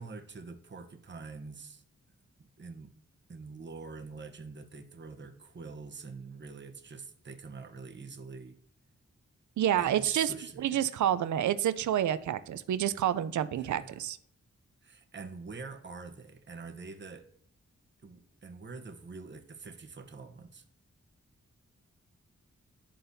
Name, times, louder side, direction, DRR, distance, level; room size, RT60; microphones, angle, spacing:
voice 1, 0.0-1.8 2.6-2.9 3.3-8.6 9.7-10.9 13.6-14.0 14.8-17.3 18.0-20.6, right 4 dB, 40° right, 3 dB, 0.9 m, -45 dB
voice 2, 9.6-14.2, right 10 dB, 75° right, 13 dB, 0.5 m, -29 dB
11.5 x 3.8 x 2.7 m, 0.64 s
cardioid pair, 50°, 30 cm